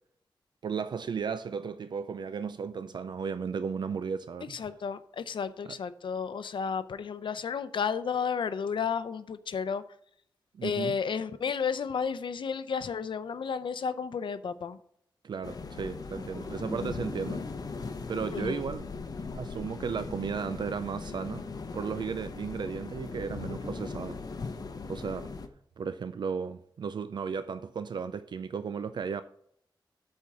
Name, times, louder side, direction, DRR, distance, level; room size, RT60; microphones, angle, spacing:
voice 1, 0.6-4.6 5.7-5.8 10.5-10.9 15.2-17.4 18.1-18.9 19.3-21.4 21.7-24.2 24.8-25.3 25.8-29.2, right 6 dB, 65° right, 0.4 m, -34 dB
voice 2, 4.4-9.8 10.6-14.8 18.3-18.6, left 6 dB, 75° left, 0.6 m, -32 dB
sound 1, 15.4-25.5, left 4 dB, 50° left, 0.8 m, -39 dB
8.3 x 4.5 x 7.2 m
wide cardioid pair, 145°, 8 cm